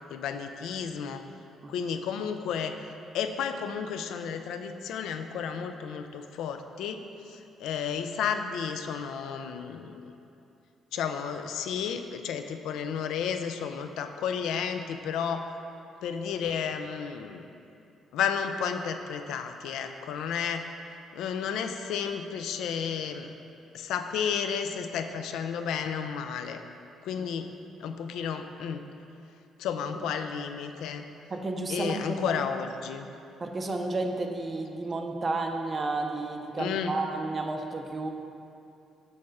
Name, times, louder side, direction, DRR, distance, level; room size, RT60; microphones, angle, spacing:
voice 1, 0.1-1.2 1.7-2.8 3.1-7.0 7.3-10.1 10.9-15.4 16.0-17.5 18.1-20.7 21.1-23.3 23.7-26.6 27.0-27.5 27.8-28.8 29.6-31.1 31.7-33.1 36.6-37.0, left 7 dB, 85° left, 7 dB, 0.4 m, -32 dB
voice 2, 31.3-32.4 33.4-38.1, right 2 dB, 25° right, 4 dB, 0.5 m, -32 dB
6.6 x 4.2 x 6.3 m, 2.7 s
cardioid pair, 170°, 0 cm